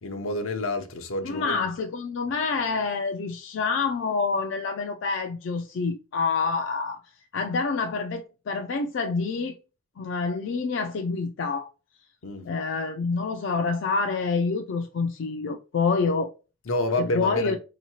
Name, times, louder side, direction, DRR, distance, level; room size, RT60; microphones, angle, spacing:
voice 1, 0.0-1.7 12.2-12.4 16.7-17.6, left 2 dB, 80° left, 0.7 m, -28 dB
voice 2, 1.2-7.0 7.3-9.5 10.0-11.7 12.4-16.3 17.0-17.6, left 4 dB, 60° left, 0.4 m, -27 dB
4.6 x 2.9 x 2.8 m
head